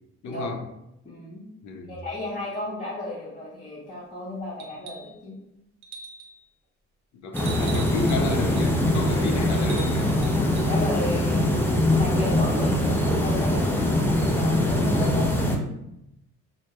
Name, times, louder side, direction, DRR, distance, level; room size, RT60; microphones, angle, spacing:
voice 1, 0.2-0.6 1.6-1.9 7.1-10.1, left 3 dB, 70° left, 4 dB, 0.5 m, -32 dB
voice 2, 1.0-1.5 1.9-5.3 10.7-15.2, left 1 dB, 30° left, -8 dB, 0.8 m, -34 dB
sound 1, 4.6-5.2 5.8-6.4 7.4-8.7 9.5-10.7 12.4-12.5, right 4 dB, 65° right, 0.5 m, -42 dB
sound 2, 7.3-15.6, left 1 dB, 5° left, 0.4 m, -23 dB
2.2 x 2.1 x 2.8 m, 0.86 s
cardioid pair, 90°, 30 cm